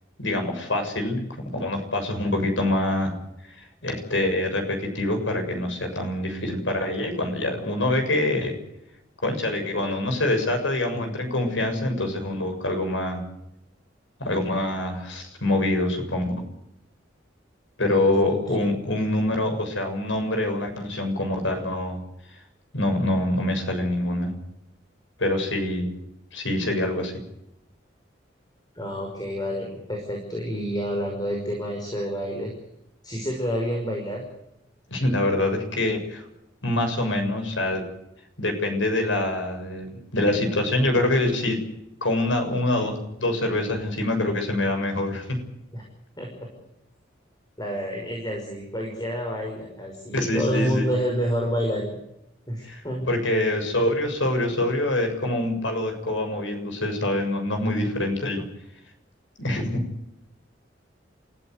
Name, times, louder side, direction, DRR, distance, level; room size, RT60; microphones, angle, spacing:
voice 1, 0.2-1.3 1.5-3.1 3.5-3.6 3.8-8.6 9.2-13.2 14.2-16.4 17.8-22.0 22.7-24.3 25.2-25.9 26.3-27.2 34.9-36.2 36.6-37.9 38.4-41.6 42.0-45.4 50.1-50.9 52.6-52.8 53.1-58.4 59.4-59.8, left 1 dB, 80° left, 5 dB, 6.9 m, -25 dB
voice 2, 17.9-18.6 28.7-32.5 33.0-34.2 45.7-45.8 46.2-46.5 47.6-52.0 52.5-53.2, equal, 20° left, 1 dB, 5.7 m, -28 dB
28.5 x 16.0 x 8.0 m, 0.83 s
head